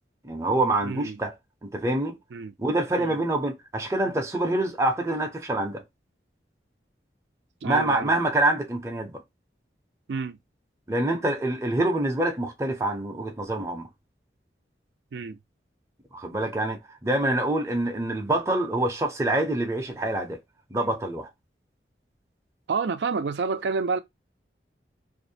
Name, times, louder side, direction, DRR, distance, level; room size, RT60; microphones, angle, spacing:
voice 1, 0.2-1.3 1.6-2.2 2.6-5.8 7.6-9.2 10.9-13.9 16.1-20.4 20.7-21.3, right 1 dB, 15° right, 0.5 m, -26 dB
voice 2, 0.8-1.2 2.3-2.5 3.0-3.2 7.6-8.1 10.1-10.4 15.1-15.4 22.7-24.0, right 4 dB, 80° right, 0.4 m, -29 dB
2.5 x 2.1 x 2.6 m
head